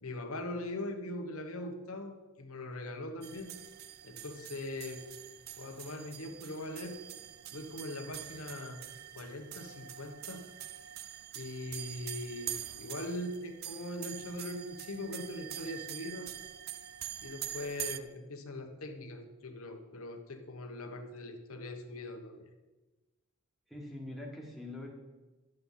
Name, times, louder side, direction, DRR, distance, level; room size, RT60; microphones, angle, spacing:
voice 1, 0.0-3.6 4.0-5.0 5.6-7.0 7.5-8.8 9.1-10.5 11.3-16.4 17.2-22.5, left 1 dB, 75° left, 4 dB, 1.2 m, -41 dB
sound 1, 3.2-18.0, right 12 dB, 45° right, 0.4 m, -45 dB
voice 2, 23.7-24.9, left 1 dB, ahead, 0 dB, 1.5 m, -43 dB
11.0 x 7.8 x 5.6 m, 1.2 s
head